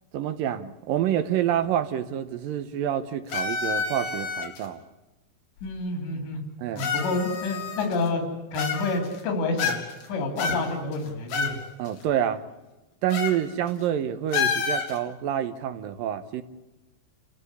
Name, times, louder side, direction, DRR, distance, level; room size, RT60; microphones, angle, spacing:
voice 1, 0.1-4.8 6.6-6.9 11.8-12.4 13.0-16.4, right 10 dB, 70° right, 10 dB, 2.3 m, -27 dB
sound 1, 3.3-4.7 5.6-5.7 6.8-8.1 8.5-9.2 9.6-10.1 10.4-11.6 11.9-12.0 13.1-13.4 13.7-13.8 14.3-15.0, left 6 dB, 65° left, 4.4 m, -29 dB
voice 2, 5.6-6.4 6.7-8.2 8.5-9.8 10.1-11.6, left 2 dB, 90° left, 3 dB, 5.7 m, -28 dB
29.5 x 15.0 x 8.3 m, 1.1 s
omnidirectional pair, 4.9 m